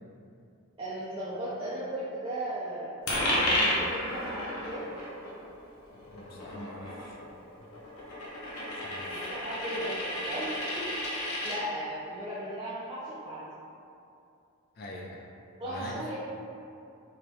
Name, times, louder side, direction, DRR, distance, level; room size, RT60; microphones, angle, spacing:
voice 1, 0.8-4.8 9.3-13.5 15.6-16.2, right 1 dB, 25° right, -8 dB, 0.4 m, -36 dB
Coin (dropping), 3.1-11.6, left 1 dB, 75° left, 0.8 m, -33 dB
voice 2, 5.9-7.7 8.7-9.3 14.8-15.3 15.6-16.0, left 1 dB, 45° left, -2 dB, 0.3 m, -44 dB
4.7 x 2.0 x 3.0 m, 2.6 s
head